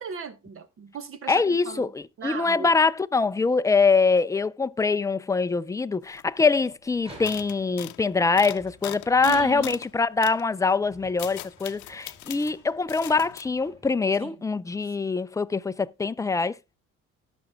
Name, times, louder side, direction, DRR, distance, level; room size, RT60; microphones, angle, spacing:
voice 1, 0.0-1.9 2.2-2.7 9.2-9.8 14.2-14.3, right 6 dB, 45° right, 1.4 m, -36 dB
voice 2, 1.3-16.5, left 4 dB, 10° left, 0.5 m, -24 dB
sound 1, 6.1-6.2 6.5-6.7 7.2-9.9 10.2-10.4 10.9-12.5 12.9-13.4, left 17 dB, 80° left, 0.7 m, -40 dB
sound 2, 6.9-7.7 8.3-10.0 10.7-14.2, right 1 dB, 20° right, 6.2 m, -50 dB
18.0 x 6.2 x 2.3 m
cardioid pair, 110°, 29 cm